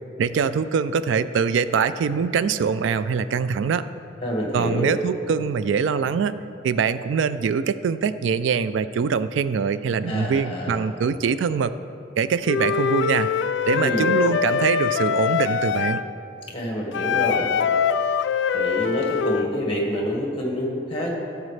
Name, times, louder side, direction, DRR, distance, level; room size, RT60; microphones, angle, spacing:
voice 1, 0.2-3.8 4.5-6.4 6.6-11.7 12.2-13.3 13.7-16.0, right 6 dB, 70° right, 14 dB, 0.3 m, -23 dB
voice 2, 4.2-4.9 10.1-10.8 13.7-14.1 16.5-17.6 18.5-21.2, equal, 30° left, -1 dB, 1.7 m, -27 dB
Wind instrument woodwind instrument, 12.4-16.1 16.9-19.5, left 7 dB, 65° left, 0.3 m, -23 dB
16.0 x 7.3 x 3.3 m, 2.7 s
head